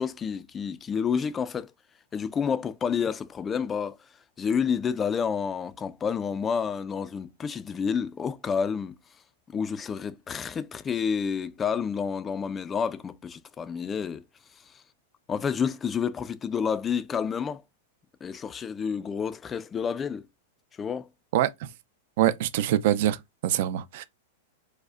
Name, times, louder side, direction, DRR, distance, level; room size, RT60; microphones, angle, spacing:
voice 1, 0.0-1.7 2.1-4.0 4.4-8.9 9.5-14.2 15.3-17.6 18.2-20.2 20.8-21.1, left 6 dB, 20° left, 0.3 m, -29 dB
voice 2, 22.2-24.0, right 12 dB, 60° right, 0.4 m, -24 dB
4.8 x 2.1 x 2.4 m
supercardioid pair, 140°, 0 cm